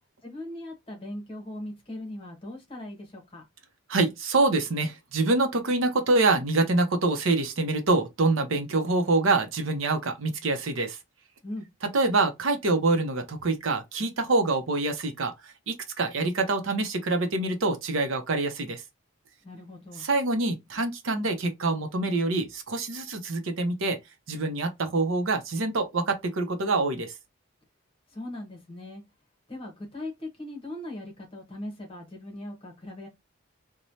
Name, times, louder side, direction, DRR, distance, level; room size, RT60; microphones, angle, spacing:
voice 1, 0.2-3.5 11.4-11.7 19.4-20.0 28.1-29.0 29.5-33.1, left 1 dB, 25° left, 1.0 m, -39 dB
voice 2, 3.9-11.0 11.8-15.3 15.7-18.8 20.0-24.0 24.3-27.1, right 3 dB, 80° right, 0.7 m, -25 dB
3.0 x 2.2 x 2.6 m
head